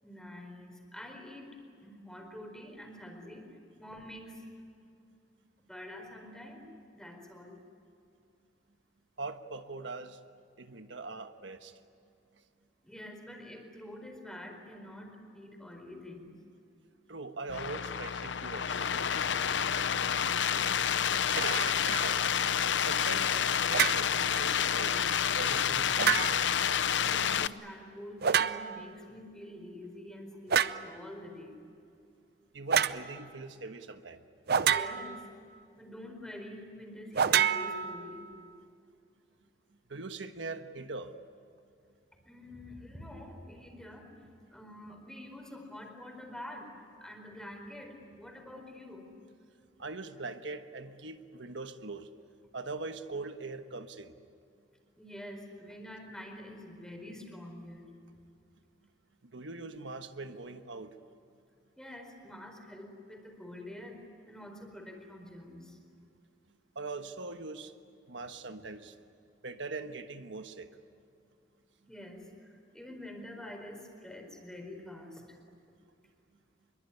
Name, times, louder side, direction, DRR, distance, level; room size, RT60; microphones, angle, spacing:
voice 1, 0.0-4.5 5.7-6.6 6.9-7.6 12.8-16.4 19.4-19.5 20.5-21.0 27.0-31.6 34.6-35.3 35.8-38.2 42.2-49.1 55.0-57.9 61.8-65.8 71.9-75.4, left 1 dB, 5° left, 3 dB, 4.5 m, -47 dB
voice 2, 9.2-10.2 10.6-11.8 17.1-18.9 21.4-22.3 22.8-25.0 25.3-26.2 32.5-34.2 39.9-41.2 49.8-52.1 52.5-54.1 59.2-60.9 66.7-67.7 68.1-68.9 69.4-70.7, right 3 dB, 85° right, 8 dB, 1.3 m, -41 dB
sound 1, 17.5-27.5, left 8 dB, 75° left, 0.7 m, -29 dB
sound 2, 23.7-24.1 26.0-26.6 28.2-28.9 30.5-30.9 32.7-33.0 34.5-35.2 37.2-38.3, right 8 dB, 60° right, 0.7 m, -27 dB
25.5 x 22.5 x 10.0 m, 2.5 s
head